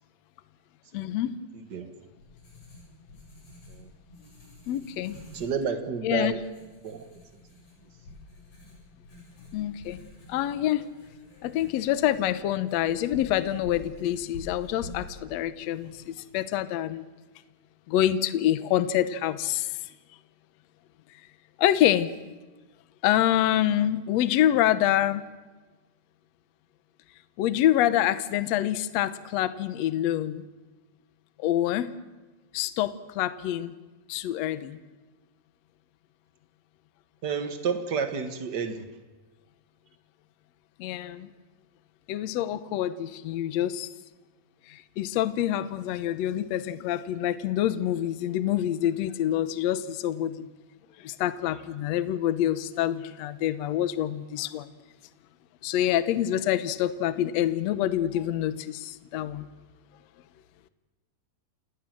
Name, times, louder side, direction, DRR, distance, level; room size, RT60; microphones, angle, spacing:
voice 1, 0.9-1.4 4.7-5.1 6.0-6.4 9.5-10.0 10.3-10.9 11.4-17.0 17.9-19.8 21.6-22.1 23.0-25.2 27.4-30.4 31.4-31.9 32.5-33.7 34.1-34.8 40.8-41.3 42.1-43.9 44.7-50.5 51.0-54.7 55.6-59.5, left 12 dB, 90° left, 14 dB, 1.5 m, -26 dB
Writing, 1.8-16.6, left 2 dB, 55° left, 9.3 m, -49 dB
voice 2, 5.3-6.4 6.8-7.0 37.2-38.8, right 5 dB, 65° right, 8 dB, 1.0 m, -30 dB
28.0 x 18.0 x 7.6 m, 1.2 s
omnidirectional pair, 4.4 m